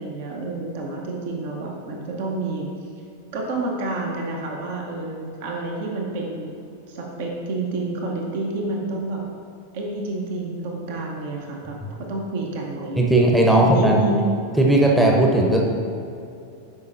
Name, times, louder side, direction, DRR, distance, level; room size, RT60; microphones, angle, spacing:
voice 1, 0.0-2.7 3.3-6.6 6.9-9.2 9.7-11.8 12.1-13.0 13.6-14.3, right 2 dB, 50° right, 0 dB, 0.9 m, -29 dB
voice 2, 13.0-14.0 14.6-15.6, right 1 dB, 5° right, -1 dB, 0.8 m, -16 dB
10.5 x 5.1 x 2.6 m, 2.6 s
figure-of-eight pair, 90°, 0 cm